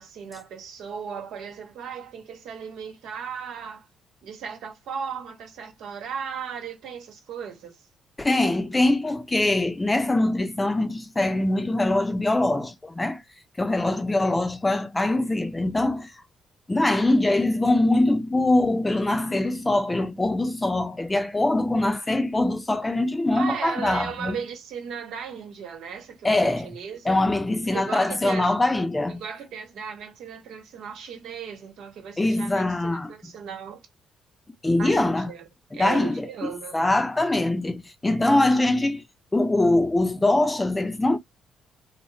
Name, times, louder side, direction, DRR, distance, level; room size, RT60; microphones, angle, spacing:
voice 1, 0.0-3.9 4.2-7.8 23.3-27.2 27.7-28.5 29.1-33.8 34.7-36.8, right 7 dB, 80° right, 1.2 m, -36 dB
voice 2, 8.2-13.2 13.6-16.1 16.7-24.4 26.2-26.7 27.0-29.2 32.2-33.3 34.6-35.3 35.7-39.0 39.3-41.2, left 2 dB, 15° left, 0.6 m, -23 dB
3.4 x 2.1 x 4.0 m
cardioid pair, 90°, 0 cm